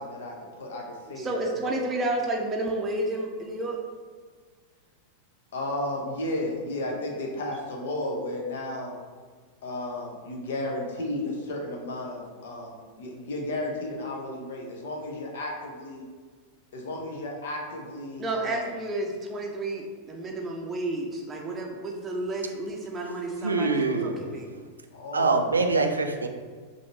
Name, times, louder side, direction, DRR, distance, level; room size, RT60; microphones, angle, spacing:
voice 1, 0.0-1.7 5.5-9.0 9.6-16.0 16.7-18.7 24.9-25.4, left 1 dB, 60° left, 0 dB, 0.8 m, -33 dB
voice 2, 1.2-3.8 18.2-24.5, right 2 dB, 20° right, 0 dB, 0.6 m, -31 dB
voice 3, 23.4-24.2 25.1-26.3, right 3 dB, 75° right, 6 dB, 0.3 m, -24 dB
5.1 x 2.7 x 3.0 m, 1.5 s
figure-of-eight pair, 90°, 0 cm